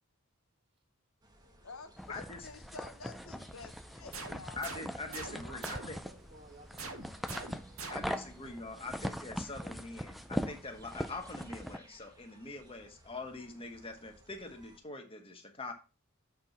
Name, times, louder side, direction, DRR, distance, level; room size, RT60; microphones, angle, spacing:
sound 1, 1.2-14.8, right 1 dB, 20° right, 1.3 m, -62 dB
voice 1, 1.6-4.8, left 4 dB, 75° left, 1.0 m, -50 dB
sound 2, 2.0-11.8, equal, ahead, 0.4 m, -41 dB
voice 2, 3.7-4.2 4.5-4.7 5.0-8.4, right 2 dB, 45° right, 1.5 m, -58 dB
sound 3, 4.1-6.2 6.8-8.4, right 3 dB, 75° right, 1.7 m, -45 dB
voice 3, 4.6-6.0 7.9-15.7, left 3 dB, 25° left, 1.4 m, -44 dB
7.6 x 4.4 x 5.4 m
head